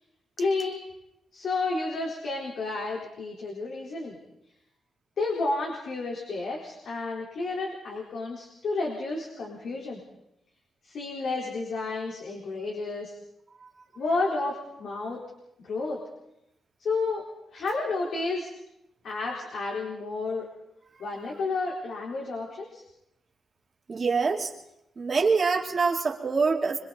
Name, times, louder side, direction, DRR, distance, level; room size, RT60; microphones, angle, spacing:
voice 1, 0.4-0.8 1.3-4.2 5.2-10.0 10.8-13.2 13.9-15.2 15.6-16.0 16.8-17.2 17.5-18.5 19.0-20.5 21.0-22.8, left 3 dB, 70° left, -2 dB, 4.2 m, -31 dB
voice 2, 23.9-24.5 25.0-26.8, right 4 dB, 35° right, 1 dB, 2.9 m, -25 dB
25.5 x 25.0 x 4.2 m, 0.83 s
cardioid pair, 120°, 0 cm